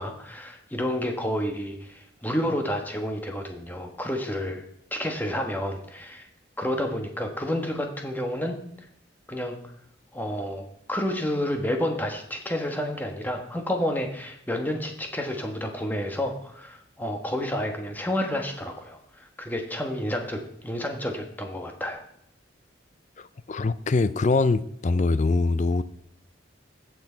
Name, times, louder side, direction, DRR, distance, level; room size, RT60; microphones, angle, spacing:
voice 1, 0.0-4.6 4.9-6.3 6.6-8.6 9.3-9.6 10.1-22.0, left 1 dB, 10° left, 1.3 m, -30 dB
voice 2, 23.2-25.8, left 3 dB, 40° left, 0.4 m, -23 dB
16.0 x 6.2 x 4.5 m
head